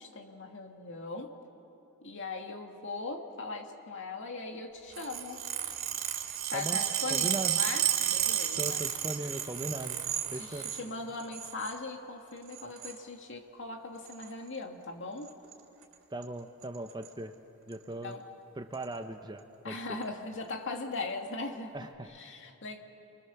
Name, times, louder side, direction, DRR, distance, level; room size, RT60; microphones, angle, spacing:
voice 1, 0.0-1.3 2.0-5.4 6.5-8.8 10.3-15.3 18.0-18.2 19.6-21.7 22.0-22.8, left 3 dB, 55° left, 3 dB, 2.2 m, -39 dB
sound 1, 4.9-10.8 11.2-11.8 12.5-13.0 14.1-14.3 15.3-15.5 15.8-15.9 16.2-16.3 16.6-17.1 17.7-17.8 18.7-18.8, right 11 dB, 65° right, 3.1 m, -32 dB
voice 2, 7.1-7.6 8.6-10.0 10.3-10.7 16.1-17.3 17.7-18.2 18.6-20.0 21.7-22.1, right 1 dB, 20° right, 7 dB, 0.9 m, -38 dB
29.5 x 23.5 x 7.1 m, 2.9 s
head